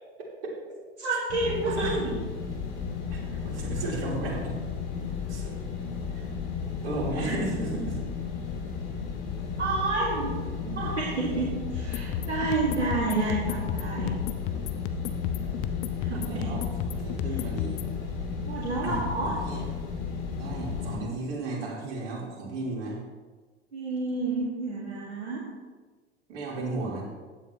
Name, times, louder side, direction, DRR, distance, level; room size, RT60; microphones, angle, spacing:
voice 1, 1.0-1.9 7.2-7.3 9.6-10.3 10.8-14.1 16.0-16.5 18.5-19.3 23.7-25.4, right 3 dB, 80° right, -5 dB, 1.9 m, -29 dB
sound 1, 1.3-21.0, left 6 dB, 55° left, 2.9 m, -34 dB
voice 2, 1.8-2.1 3.1-4.6 5.3-5.6 6.1-6.2 6.8-8.0 10.5-10.9 16.0-17.8 18.8-19.6 20.4-23.0 26.3-27.0, right 2 dB, 60° right, -3 dB, 3.6 m, -34 dB
sound 2, 11.7-17.9, left 9 dB, 40° left, 0.7 m, -34 dB
15.0 x 9.3 x 3.0 m, 1.4 s
figure-of-eight pair, 75°, 33 cm